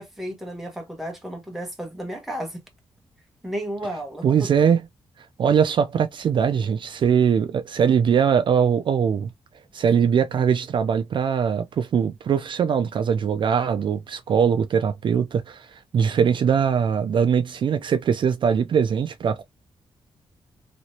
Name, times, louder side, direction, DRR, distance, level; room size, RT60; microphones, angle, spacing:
voice 1, 0.0-2.6 3.4-4.5, right 1 dB, 5° right, 1.1 m, -33 dB
voice 2, 4.2-4.8 5.4-9.3 9.7-19.4, right 7 dB, 55° right, 0.4 m, -21 dB
3.0 x 2.9 x 2.7 m
wide cardioid pair, 165°, 10 cm